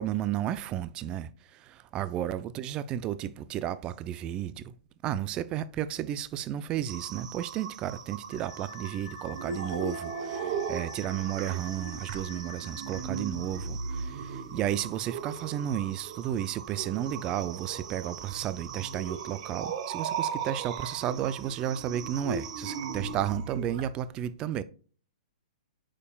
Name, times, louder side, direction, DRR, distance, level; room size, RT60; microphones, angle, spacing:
voice 1, 0.0-4.7 5.0-24.6, right 11 dB, 20° right, 0.3 m, -33 dB
sound 1, 6.9-23.4, right 8 dB, 65° right, 0.7 m, -45 dB
Wind instrument woodwind instrument, 8.3-13.1, left 11 dB, 65° left, 0.5 m, -49 dB
sound 2, 9.3-23.9, right 5 dB, 40° right, 0.9 m, -37 dB
8.3 x 5.5 x 2.3 m
hypercardioid pair, 155°, 4 cm